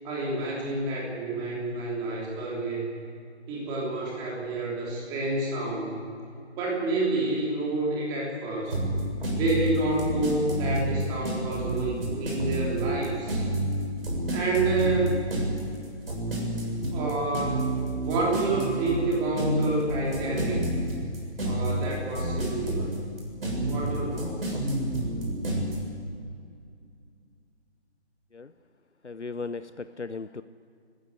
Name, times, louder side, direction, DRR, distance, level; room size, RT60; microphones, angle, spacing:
voice 1, 0.0-2.9 3.5-6.0 6.6-8.7 9.3-13.4 14.3-15.2 16.9-17.5 18.0-20.6 21.4-22.9 23.6-24.6, right 2 dB, 10° right, -3 dB, 3.4 m, -29 dB
sound 1, 8.7-25.8, right 1 dB, 55° right, 6.8 m, -29 dB
voice 2, 29.0-30.4, left 4 dB, 85° left, 13 dB, 0.8 m, -36 dB
27.0 x 15.0 x 8.3 m, 2.3 s
figure-of-eight pair, 150°, 34 cm